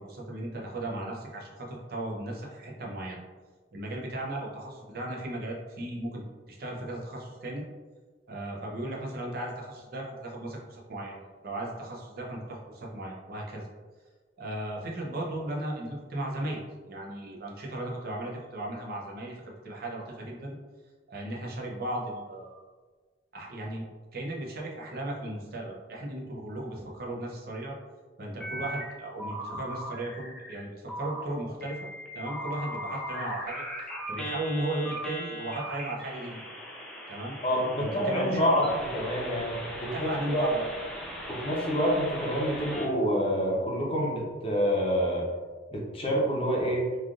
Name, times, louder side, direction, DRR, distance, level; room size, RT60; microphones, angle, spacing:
voice 1, 0.0-3.2 3.7-6.2 6.5-7.6 8.3-13.7 14.4-20.6 21.1-22.6 23.3-23.8 24.1-27.7 28.2-31.8 32.1-33.6 34.1-36.4 37.1-37.4 37.8-38.5 39.9-40.7, right 1 dB, 55° right, -2 dB, 0.6 m, -36 dB
sound 1, 28.4-28.9 29.2-30.6 30.9-31.2 31.6-42.9, equal, 5° left, 0.3 m, -39 dB
voice 2, 37.4-40.5 41.3-45.3 45.7-46.9, equal, 30° left, -3 dB, 0.7 m, -27 dB
3.2 x 2.4 x 2.4 m, 1.4 s
head